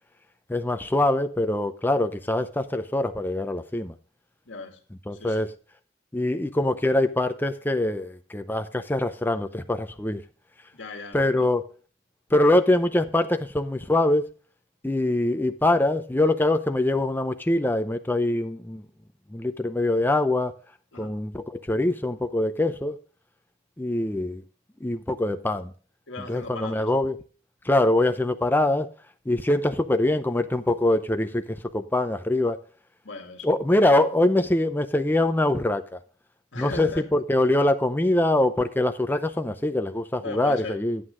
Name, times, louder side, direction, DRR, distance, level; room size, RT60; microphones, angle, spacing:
voice 1, 0.5-3.9 5.1-5.5 6.1-10.2 11.1-11.7 12.3-14.3 14.8-18.8 19.3-20.5 21.0-23.0 23.8-24.4 24.8-25.7 26.3-27.2 27.6-28.9 29.3-32.6 33.4-36.0 36.6-41.0, left 1 dB, 10° left, 0.6 m, -23 dB
voice 2, 4.5-4.8 5.2-5.4 10.7-11.5 20.9-21.2 26.1-26.9 33.0-33.5 36.5-37.0 40.2-40.8, left 3 dB, 75° left, 1.8 m, -37 dB
9.5 x 8.5 x 3.7 m
head